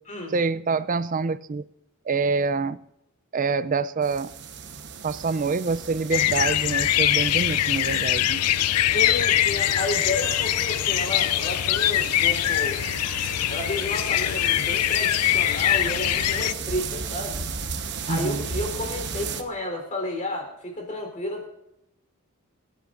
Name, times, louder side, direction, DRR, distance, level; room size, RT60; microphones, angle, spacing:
voice 1, 0.3-1.6 2.1-2.8 3.3-4.3 5.0-8.4 18.1-18.4, right 4 dB, 35° right, 0.4 m, -26 dB
sound 1, 4.0-19.4, right 5 dB, 50° right, 1.1 m, -36 dB
sound 2, 6.1-16.5, left 12 dB, 85° left, 0.4 m, -23 dB
voice 2, 8.9-12.9 13.5-17.4 18.0-21.5, left 2 dB, 35° left, 3.8 m, -31 dB
26.5 x 10.0 x 2.6 m
head